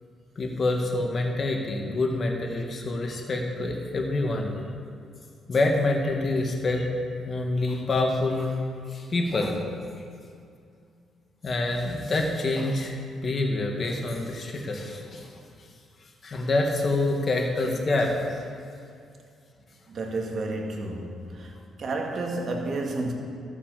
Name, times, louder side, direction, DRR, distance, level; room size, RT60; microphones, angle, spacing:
voice 1, 0.4-4.6 5.5-6.9 7.3-8.6 8.9-9.7 11.4-15.4 16.2-18.4, left 2 dB, 40° left, 2 dB, 1.9 m, -26 dB
voice 2, 19.9-21.5 21.8-23.1, right 2 dB, 50° right, 2 dB, 1.9 m, -31 dB
13.0 x 7.2 x 6.8 m, 2.4 s
cardioid pair, 90°, 0 cm